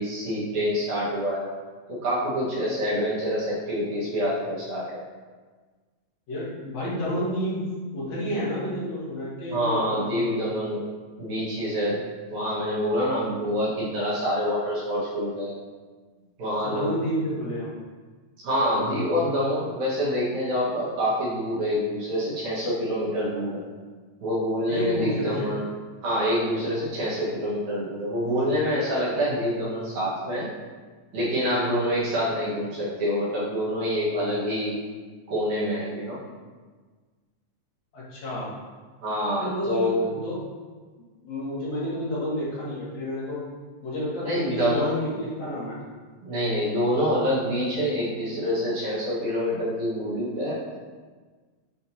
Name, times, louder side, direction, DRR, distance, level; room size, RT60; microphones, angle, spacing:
voice 1, 0.0-1.5 1.9-5.0 9.5-10.8 11.2-12.0 12.3-15.6 16.4-17.0 18.4-23.6 24.2-25.6 26.0-30.5 31.1-34.8 35.3-36.2 39.0-40.1 44.2-45.2 46.2-50.6, equal, 75° right, -8 dB, 3.0 m, -26 dB
voice 2, 6.3-7.7 7.9-10.3 16.6-17.8 24.7-25.5 37.9-38.5 39.4-40.4 41.2-43.4 43.8-45.8, equal, 70° left, -7 dB, 2.9 m, -30 dB
8.8 x 3.7 x 2.8 m, 1.4 s
omnidirectional pair, 3.3 m